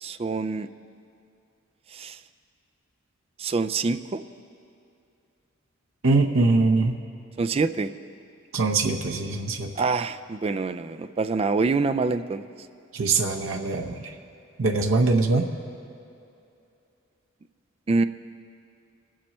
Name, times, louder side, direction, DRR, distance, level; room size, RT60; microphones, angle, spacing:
voice 1, 0.0-0.7 1.9-2.2 3.4-4.2 7.4-7.9 9.8-12.4 17.9-18.0, right 4 dB, 30° right, 11 dB, 0.3 m, -25 dB
voice 2, 6.0-7.0 8.5-9.7 12.9-14.0 14.6-15.4, right 3 dB, 85° right, 2 dB, 0.8 m, -22 dB
22.5 x 7.5 x 4.3 m, 2.6 s
head